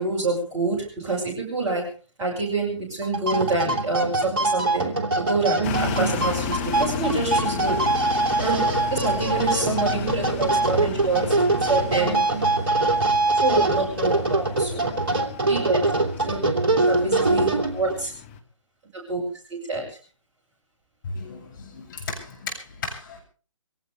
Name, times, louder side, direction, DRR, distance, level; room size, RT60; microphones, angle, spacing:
voice 1, 0.0-1.8 2.2-7.8 8.4-11.2 11.7-12.2 13.3-14.8 15.5-15.8 16.2-16.4 16.7-18.1 19.1-19.2 19.7-19.8, right 3 dB, 15° right, -4 dB, 6.3 m, -27 dB
sound 1, 3.0-18.0, right 2 dB, 45° right, 2.9 m, -23 dB
sound 2, 5.6-18.4, left 6 dB, 20° left, 2.0 m, -33 dB
voice 2, 21.0-23.2, left 4 dB, 40° left, 0 dB, 7.7 m, -35 dB
23.5 x 17.5 x 3.4 m, 0.38 s
figure-of-eight pair, 140°, 17 cm